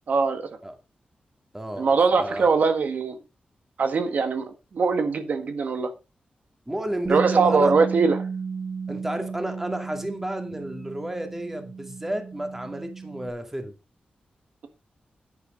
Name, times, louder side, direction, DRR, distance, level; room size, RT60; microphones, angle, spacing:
voice 1, 0.1-0.5 1.8-3.2 3.8-5.9 7.1-8.2, right 4 dB, 65° right, 1.6 m, -22 dB
voice 2, 1.5-2.5 6.7-7.7 8.9-13.7, right 1 dB, 10° right, 2.2 m, -32 dB
Bass guitar, 7.1-13.3, right 5 dB, 35° right, 1.7 m, -33 dB
10.5 x 10.0 x 3.8 m
wide cardioid pair, 150°, 3 cm